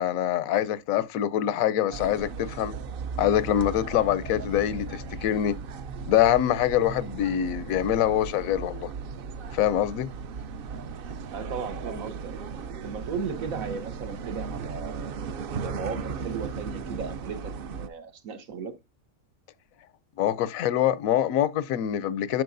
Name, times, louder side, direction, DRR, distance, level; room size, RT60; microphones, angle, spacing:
voice 1, 0.0-2.7 3.2-5.6 6.1-8.9 9.5-10.1 20.2-22.4, left 11 dB, 85° left, 1.0 m, -24 dB
sound 1, 1.9-17.9, right 5 dB, 60° right, 0.6 m, -36 dB
voice 2, 11.3-12.3 12.8-15.1 15.6-18.7, right 5 dB, 90° right, 1.5 m, -36 dB
9.3 x 6.1 x 2.6 m
omnidirectional pair, 1.4 m